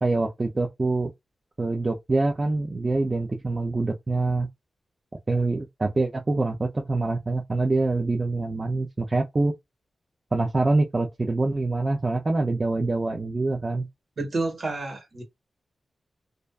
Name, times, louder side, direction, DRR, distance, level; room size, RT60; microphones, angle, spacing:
voice 1, 0.0-1.1 1.6-4.5 5.3-9.5 10.3-13.9, right 2 dB, 30° right, 0.5 m, -25 dB
voice 2, 14.2-15.2, right 3 dB, 55° right, 1.2 m, -29 dB
2.5 x 2.3 x 2.3 m
wide cardioid pair, 130°, 0 cm